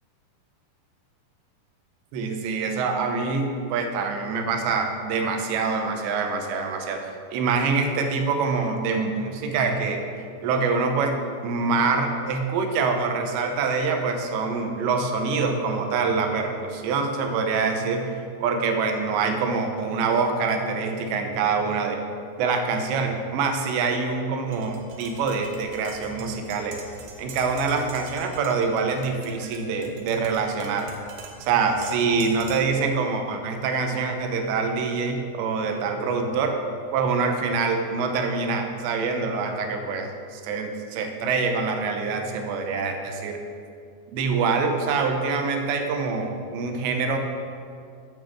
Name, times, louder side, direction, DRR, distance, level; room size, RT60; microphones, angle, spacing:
voice 1, 2.1-10.0 10.4-11.2 11.4-22.0 22.4-26.8 27.2-30.9 31.4-36.6 36.9-43.4 44.1-47.2, right 4 dB, 90° right, 4 dB, 3.2 m, -25 dB
Tap, 24.5-32.8, right 3 dB, 75° right, 2.8 m, -44 dB
8.6 x 6.3 x 7.2 m, 2.3 s
omnidirectional pair, 4.9 m